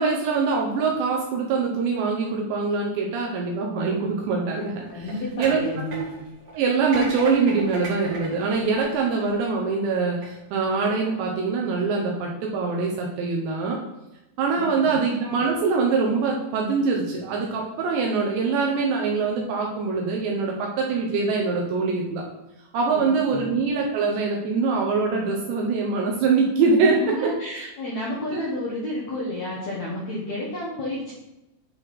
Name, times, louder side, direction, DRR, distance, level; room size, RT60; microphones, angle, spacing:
voice 1, 0.0-5.1 5.4-5.6 6.0-6.1 6.5-13.8 14.4-22.2 22.7-27.7 28.3-28.4, right 4 dB, 75° right, 0 dB, 3.0 m, -24 dB
sound 1, 4.6-9.5 10.0-10.3, right 2 dB, 40° right, 2.1 m, -38 dB
voice 2, 4.9-6.0 14.6-15.0 22.9-23.4 26.8-31.1, left 1 dB, 75° left, -6 dB, 1.6 m, -31 dB
10.5 x 4.2 x 4.9 m, 0.93 s
omnidirectional pair, 5.6 m